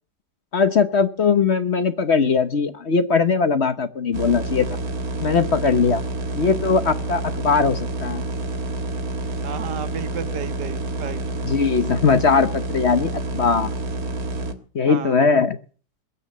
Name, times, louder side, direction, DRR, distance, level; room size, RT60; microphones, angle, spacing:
voice 1, 0.5-4.7 5.2-6.0 6.3-8.2 11.4-13.7 14.7-15.6, left 5 dB, 45° left, 10 dB, 1.1 m, -20 dB
sound 1, 4.1-14.5, right 2 dB, 60° right, 1.9 m, -28 dB
voice 2, 9.4-11.2 14.8-15.2, right 8 dB, 80° right, 11 dB, 1.7 m, -33 dB
21.5 x 8.8 x 7.4 m, 0.41 s
omnidirectional pair, 1.8 m